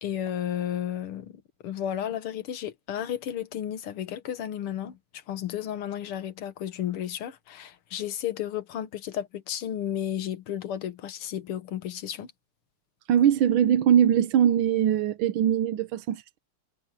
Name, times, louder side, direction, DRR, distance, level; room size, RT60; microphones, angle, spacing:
voice 1, 0.0-1.3 1.6-5.0 5.3-12.3, left 10 dB, 80° left, 2.2 m, -33 dB
voice 2, 13.1-16.4, right 9 dB, 70° right, 1.6 m, -22 dB
omnidirectional pair, 2.4 m